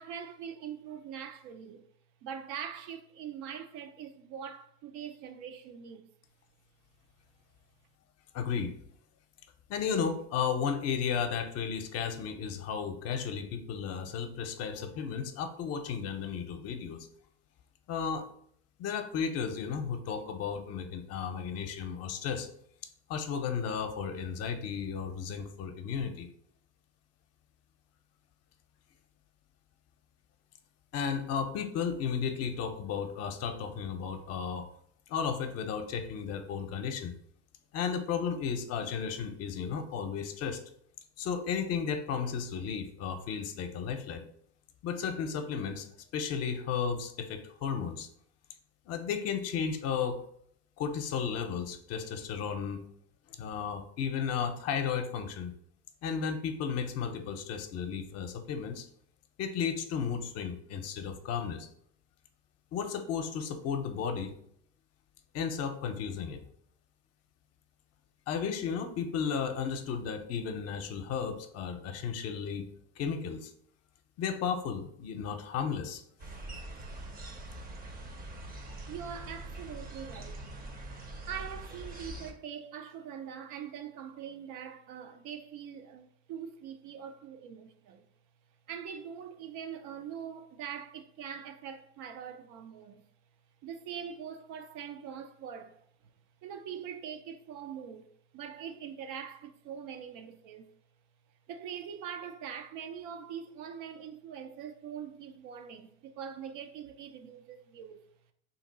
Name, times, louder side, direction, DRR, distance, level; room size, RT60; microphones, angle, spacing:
voice 1, 0.0-1.8 2.2-6.1 78.9-80.4 81.3-88.0 88.7-93.0 93.6-95.8 96.4-98.1 98.3-100.7 101.5-108.0, right 8 dB, 75° right, 0.6 m, -43 dB
voice 2, 8.3-8.7 9.7-17.1 17.9-18.3 18.8-22.5 23.1-26.3 30.9-34.7 35.1-37.1 37.7-40.6 41.2-44.3 44.8-45.9 46.1-48.1 48.9-50.2 50.8-52.8 53.4-55.5 56.0-58.9 59.4-61.7 62.7-64.4 65.3-66.4 68.3-72.7 73.0-73.5 74.2-76.0, left 6 dB, 55° left, 0.6 m, -34 dB
sound 1, 76.2-82.3, right 1 dB, 30° right, 0.6 m, -43 dB
2.9 x 2.8 x 4.0 m
supercardioid pair, 105°, 30 cm